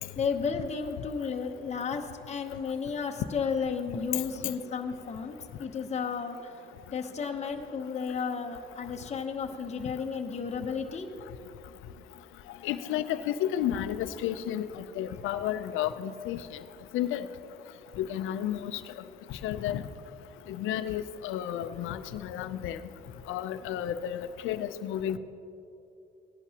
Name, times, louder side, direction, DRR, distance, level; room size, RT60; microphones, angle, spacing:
voice 1, 0.2-6.5 6.9-11.1, left 5 dB, 35° left, 3 dB, 0.9 m, -33 dB
voice 2, 12.6-16.4 16.9-17.3 18.0-18.8 19.3-19.8 20.5-22.8 23.3-25.2, left 11 dB, 90° left, 12 dB, 0.5 m, -32 dB
17.5 x 11.0 x 2.9 m, 2.8 s
cardioid pair, 90°, 20 cm